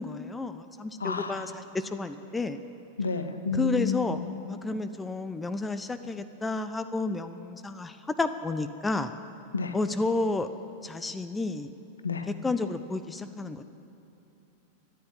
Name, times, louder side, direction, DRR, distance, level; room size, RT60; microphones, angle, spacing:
voice 1, 0.0-2.6 3.5-4.2 4.5-9.1 9.7-10.5 10.8-11.7 12.4-13.6, left 3 dB, 10° left, 10 dB, 0.6 m, -31 dB
voice 2, 1.0-1.5 3.0-4.2 9.5-9.8 12.0-12.3, left 4 dB, 75° left, 9 dB, 0.9 m, -30 dB
13.5 x 9.7 x 8.5 m, 2.9 s
figure-of-eight pair, 90°, 0 cm